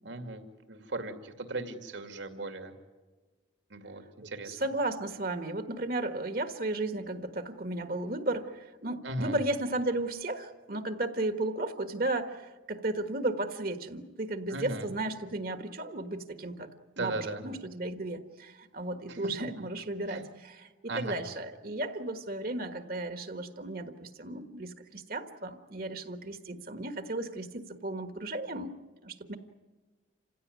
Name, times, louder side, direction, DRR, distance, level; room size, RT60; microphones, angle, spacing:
voice 1, 0.0-0.4 0.7-2.7 3.7-4.6 9.0-9.4 14.5-14.9 17.0-17.4 19.1-19.3 20.1-20.2 20.9-21.2, right 2 dB, 75° right, 7 dB, 2.5 m, -37 dB
voice 2, 4.4-16.7 17.0-28.7 29.0-29.4, right 2 dB, 50° right, 9 dB, 1.5 m, -34 dB
28.0 x 16.5 x 9.6 m, 1.3 s
head